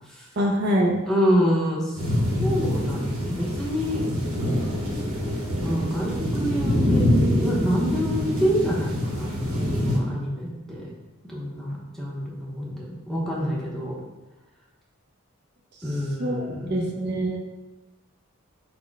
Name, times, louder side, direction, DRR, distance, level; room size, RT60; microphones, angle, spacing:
voice 1, 0.4-1.0 16.2-17.4, equal, 50° right, 1 dB, 0.5 m, -24 dB
voice 2, 1.1-4.0 5.6-10.9 11.3-14.0 15.8-16.8, equal, ahead, -5 dB, 0.6 m, -27 dB
sound 1, 2.0-10.0, left 1 dB, 75° right, 1.0 m, -25 dB
4.1 x 2.1 x 4.5 m, 1.1 s
head